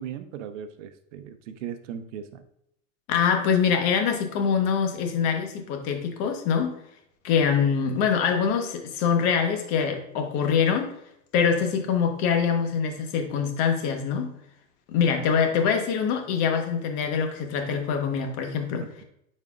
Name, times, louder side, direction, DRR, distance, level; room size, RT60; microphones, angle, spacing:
voice 1, 0.0-2.4, right 8 dB, 65° right, 9 dB, 0.8 m, -37 dB
voice 2, 3.1-6.8 7.2-10.9 11.3-14.3 14.9-18.9, left 6 dB, 45° left, 5 dB, 1.2 m, -24 dB
9.1 x 4.4 x 2.4 m, 0.75 s
hypercardioid pair, 125°, 39 cm